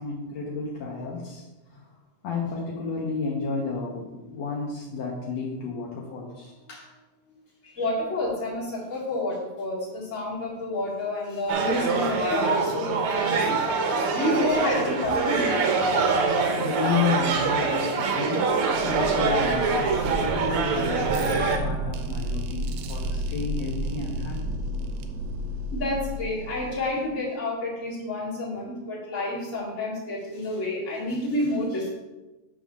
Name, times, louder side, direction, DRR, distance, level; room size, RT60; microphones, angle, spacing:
voice 1, 0.0-1.9 2.2-6.9 7.2-7.4 16.6-18.5 18.8-24.6, left 4 dB, 70° left, -3 dB, 2.1 m, -32 dB
voice 2, 7.6-13.5 14.1-15.5 25.7-31.9, left 2 dB, 25° left, -6 dB, 2.4 m, -29 dB
sound 1, 11.5-21.6, right 4 dB, 65° right, 1.4 m, -24 dB
sound 2, 18.6-27.1, right 1 dB, 80° right, 2.0 m, -32 dB
8.7 x 3.7 x 6.2 m, 1.1 s
omnidirectional pair, 3.4 m